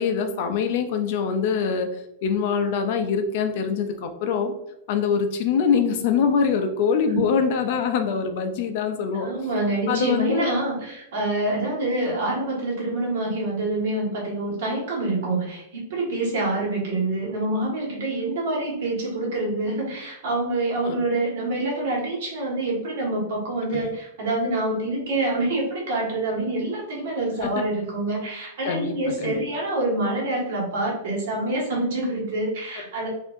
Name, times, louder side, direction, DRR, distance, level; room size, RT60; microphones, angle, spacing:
voice 1, 0.0-4.5 4.9-9.3 9.9-10.5 20.8-21.0 23.7-23.9 27.4-27.6 28.6-29.3, left 6 dB, 45° left, 7 dB, 0.4 m, -24 dB
voice 2, 9.1-33.1, right 2 dB, 65° right, -2 dB, 1.5 m, -26 dB
4.4 x 2.6 x 2.5 m, 0.83 s
supercardioid pair, 170°, 0 cm